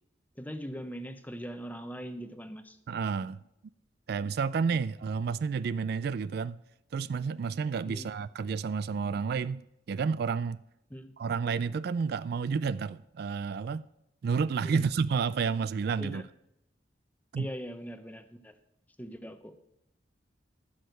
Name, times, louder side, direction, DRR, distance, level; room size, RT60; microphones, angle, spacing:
voice 1, 0.4-2.8 7.9-8.1 10.9-11.1 14.6-14.9 16.0-16.2 17.4-18.5 19.0-19.6, equal, 10° left, 0.8 m, -41 dB
voice 2, 2.9-3.4 4.1-6.6 6.9-9.6 9.9-10.6 11.2-13.9 14.2-16.2 17.3-17.5, right 5 dB, 60° right, 0.3 m, -30 dB
14.5 x 6.4 x 6.6 m
head